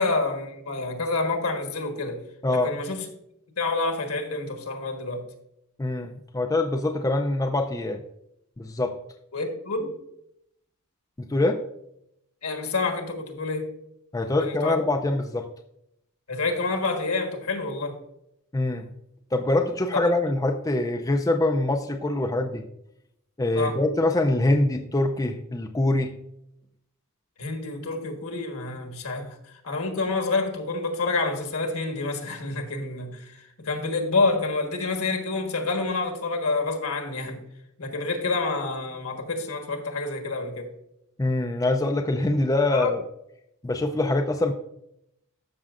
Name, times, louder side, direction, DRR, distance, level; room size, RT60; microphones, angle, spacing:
voice 1, 0.0-2.2 2.5-3.1 3.6-5.2 9.3-10.0 12.4-13.7 14.4-14.8 16.3-18.0 23.5-23.8 27.4-37.4 37.8-40.7 42.7-42.9, left 3 dB, 70° left, 3 dB, 1.4 m, -28 dB
voice 2, 5.8-8.0 8.6-8.9 11.2-11.6 14.1-15.5 18.5-18.9 19.3-22.6 23.4-26.1 41.2-43.0 43.6-44.5, left 2 dB, 15° left, 4 dB, 0.4 m, -24 dB
13.0 x 6.2 x 2.5 m, 0.79 s
head